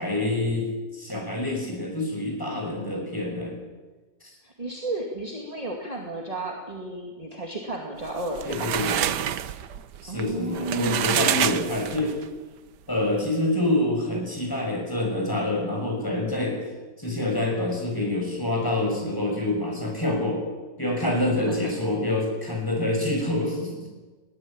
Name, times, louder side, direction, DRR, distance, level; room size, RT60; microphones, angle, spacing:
voice 1, 0.0-3.6 8.4-9.0 10.0-12.1 12.9-16.6 17.0-20.4 20.8-23.9, left 1 dB, 10° left, 0 dB, 6.5 m, -26 dB
voice 2, 4.4-8.8 10.1-11.2 21.4-21.7, right 2 dB, 20° right, 0 dB, 2.4 m, -33 dB
sound 1, 8.1-12.3, right 10 dB, 85° right, 1.5 m, -27 dB
21.0 x 17.5 x 8.8 m, 1.3 s
omnidirectional pair, 1.8 m